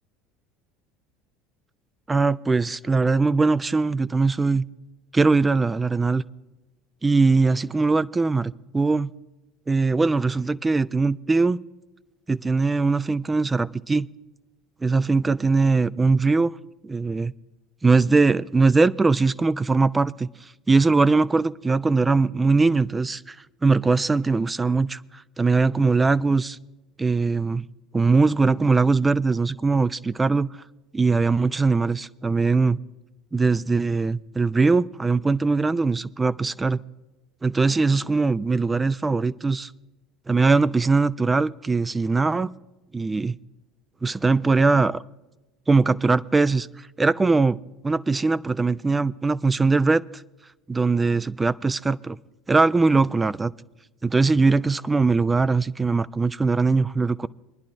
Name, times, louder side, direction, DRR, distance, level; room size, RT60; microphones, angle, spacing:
voice 1, 2.1-4.7 5.1-6.2 7.0-9.1 9.7-11.6 12.3-14.1 14.8-16.5 16.8-17.3 17.8-23.4 23.6-26.6 27.0-27.7 27.9-30.5 30.9-32.8 33.3-36.8 37.4-39.7 40.3-42.5 42.9-43.4 44.0-45.0 45.7-47.6 47.8-50.2 50.7-52.2 52.5-53.5 54.0-57.3, right 3 dB, 20° right, 16 dB, 0.3 m, -21 dB
24.0 x 10.5 x 2.5 m, 1.1 s
hypercardioid pair, 75°, 0 cm